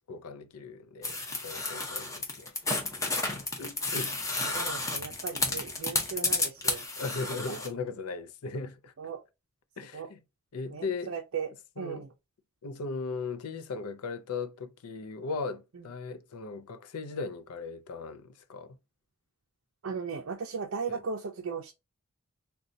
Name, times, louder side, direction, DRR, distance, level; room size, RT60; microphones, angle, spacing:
voice 1, 0.1-2.5 3.2-4.2 7.0-8.9 9.8-10.2 10.5-11.1 11.8-12.1 12.6-18.8 20.9-21.0, left 4 dB, 90° left, 0.5 m, -38 dB
sound 1, 1.0-7.7, left 2 dB, 15° left, 0.6 m, -31 dB
voice 2, 4.4-6.8 9.0-9.2 9.9-10.1 10.7-11.5 11.8-12.1 19.8-21.7, right 5 dB, 60° right, 0.4 m, -37 dB
3.8 x 2.2 x 2.6 m
head